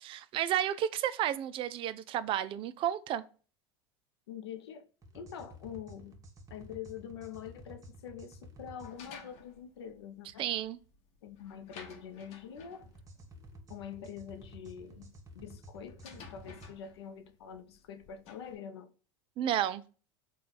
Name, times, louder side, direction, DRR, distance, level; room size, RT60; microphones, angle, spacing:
voice 1, 0.0-3.2 10.4-10.8 19.4-19.8, right 11 dB, 40° right, 0.3 m, -32 dB
voice 2, 4.3-4.9 5.1-6.2 6.5-10.5 11.2-12.9 13.7-18.9, left 8 dB, 90° left, 0.5 m, -45 dB
sound 1, 5.0-8.9 12.8-16.7, equal, 25° right, 0.8 m, -52 dB
sound 2, 8.8-18.6, left 5 dB, 55° left, 0.9 m, -55 dB
3.2 x 2.3 x 3.9 m
hypercardioid pair, 100°, 13 cm